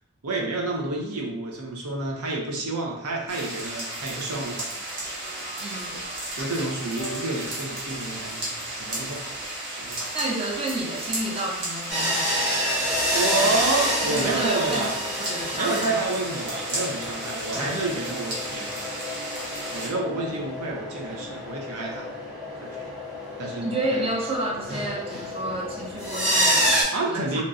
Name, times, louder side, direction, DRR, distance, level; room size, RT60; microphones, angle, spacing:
voice 1, 0.2-4.9 6.3-9.3 9.7-10.0 13.1-15.0 15.5-18.8 19.7-22.1 22.6-22.9 23.4-24.1 26.9-27.4, right 2 dB, 85° right, -1 dB, 0.7 m, -29 dB
sound 1, 3.3-19.9, right 1 dB, 50° right, 0.9 m, -34 dB
sound 2, 5.2-8.6, right 2 dB, 55° left, 0.4 m, -44 dB
voice 2, 5.6-6.1 10.1-12.4 13.2-13.6 14.0-16.1 23.6-27.4, right 2 dB, 25° right, 0 dB, 0.4 m, -31 dB
sound 3, 11.9-26.8, equal, 5° right, 0.7 m, -28 dB
2.9 x 2.6 x 2.4 m, 0.84 s
head